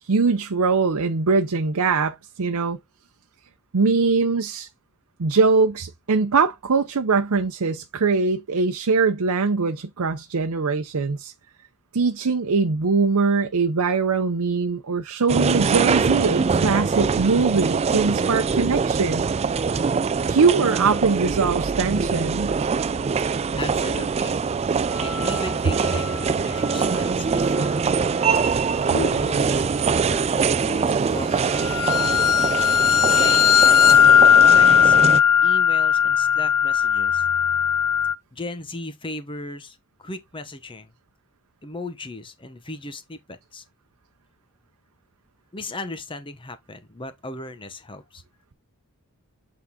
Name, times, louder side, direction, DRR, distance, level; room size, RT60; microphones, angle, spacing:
voice 1, 0.0-2.8 3.7-4.7 5.2-11.3 11.9-19.3 20.3-22.5, right 4 dB, 85° right, 0.7 m, -22 dB
sound 1, 15.3-35.2, right 5 dB, 30° right, 0.3 m, -23 dB
voice 2, 23.6-27.8 28.8-32.1 33.1-35.0 35.4-37.2 38.3-40.9 41.6-43.6 45.5-48.2, left 2 dB, 25° left, 0.9 m, -36 dB
sound 2, 25.0-25.4 25.9-26.1 31.6-38.1, left 8 dB, 90° left, 0.6 m, -17 dB
8.3 x 3.9 x 3.7 m
head